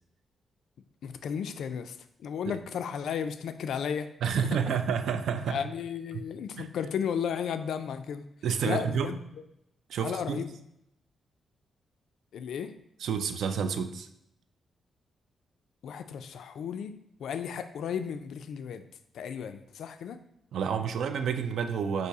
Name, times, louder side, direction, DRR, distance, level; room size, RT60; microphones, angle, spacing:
voice 1, 1.0-4.1 4.4-4.5 5.5-8.3 8.6-9.2 10.0-10.5 12.3-12.7 15.8-16.9 17.2-18.8 19.1-20.2, left 7 dB, 80° left, 10 dB, 0.3 m, -34 dB
voice 2, 4.2-5.6 6.1-6.2 6.6-6.7 8.4-9.2 9.9-10.5 13.0-14.1 20.5-22.1, right 7 dB, 80° right, 9 dB, 0.3 m, -29 dB
4.0 x 2.7 x 4.7 m, 0.78 s
cardioid pair, 130°, 0 cm